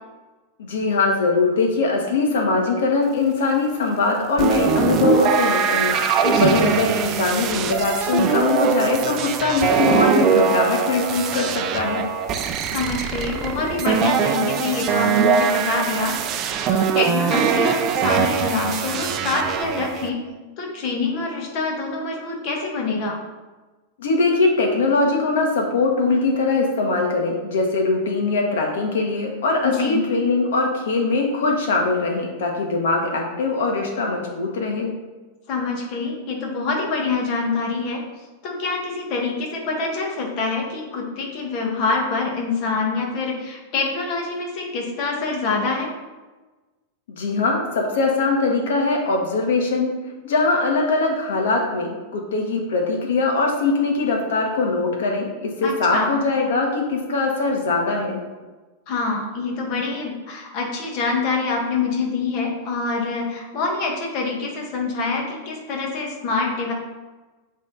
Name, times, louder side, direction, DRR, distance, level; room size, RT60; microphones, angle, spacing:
voice 1, 0.6-6.0 6.4-12.1 24.0-34.9 47.2-49.9 50.2-58.2, left 3 dB, 85° left, 1 dB, 1.5 m, -21 dB
sound 1, 4.4-20.1, right 7 dB, 30° right, 0.5 m, -22 dB
voice 2, 6.2-6.6 12.7-20.2 20.6-23.1 29.6-30.0 35.5-38.0 38.4-45.9 55.6-56.1 58.9-66.7, left 4 dB, 40° left, 0 dB, 1.5 m, -25 dB
7.8 x 3.6 x 4.0 m, 1.2 s
supercardioid pair, 155°, 0 cm